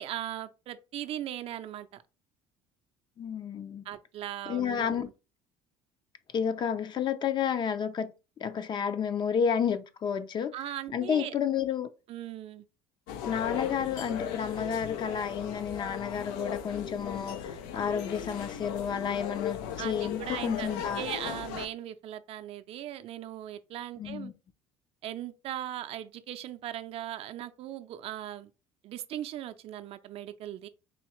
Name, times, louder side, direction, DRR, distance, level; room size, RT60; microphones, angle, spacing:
voice 1, 0.0-2.0 3.9-5.1 10.5-11.3 12.1-12.6 19.8-24.3 25.0-28.5 28.8-30.7, right 12 dB, 55° right, 0.5 m, -39 dB
voice 2, 3.2-3.8 4.5-5.1 6.3-8.1 8.4-10.5 10.9-11.9 13.2-21.0 24.0-24.3, left 7 dB, 40° left, 0.5 m, -31 dB
sound 1, 13.1-21.7, left 9 dB, 90° left, 0.5 m, -37 dB
4.2 x 2.8 x 3.0 m
cardioid pair, 110°, 12 cm